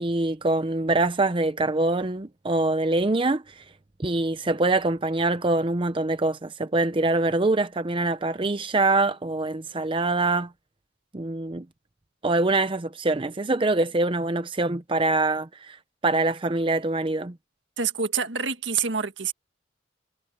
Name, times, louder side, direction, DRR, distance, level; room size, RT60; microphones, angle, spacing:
voice 1, 0.0-3.6 4.0-10.5 11.1-11.6 12.2-15.8 16.0-17.3, right 2 dB, 30° right, 0.7 m, -24 dB
voice 2, 17.8-19.3, right 6 dB, 70° right, 1.7 m, -27 dB
head